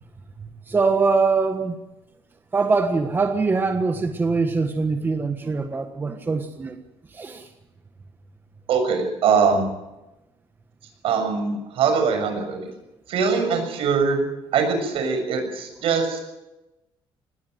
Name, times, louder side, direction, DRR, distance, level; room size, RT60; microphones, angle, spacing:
voice 1, 0.4-1.8 2.5-6.8 7.1-7.5, right 4 dB, 20° right, 6 dB, 1.5 m, -23 dB
voice 2, 8.7-9.6 11.0-12.7 13.1-14.2 14.5-16.2, right 5 dB, 70° right, 6 dB, 6.7 m, -22 dB
20.0 x 17.0 x 9.3 m, 0.97 s
cardioid pair, 140°, 10 cm